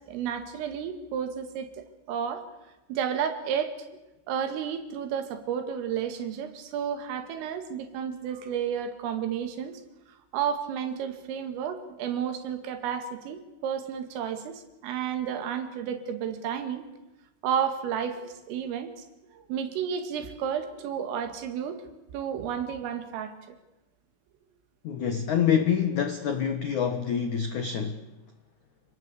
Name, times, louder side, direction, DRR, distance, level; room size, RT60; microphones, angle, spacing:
voice 1, 0.1-2.4 2.9-3.8 4.3-9.8 10.3-16.8 17.4-18.9 19.3-21.8 22.1-23.3, right 8 dB, 85° right, 8 dB, 4.8 m, -32 dB
voice 2, 24.8-28.0, left 8 dB, 80° left, 8 dB, 1.7 m, -26 dB
28.5 x 19.0 x 8.5 m, 1.0 s
omnidirectional pair, 5.7 m